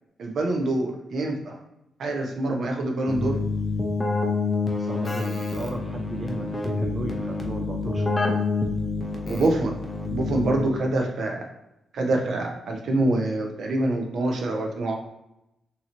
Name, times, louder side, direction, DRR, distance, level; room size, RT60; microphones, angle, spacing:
voice 1, 0.2-1.6 2.0-3.4 9.3-9.8 10.1-11.4 11.9-14.9, right 2 dB, 65° right, 2 dB, 0.7 m, -25 dB
Keyboard (musical), 3.1-10.9, left 3 dB, 20° left, 0.7 m, -27 dB
voice 2, 4.8-8.1, right 2 dB, 30° right, 1 dB, 0.5 m, -34 dB
3.8 x 2.8 x 2.9 m, 0.88 s
cardioid pair, 105°, 0 cm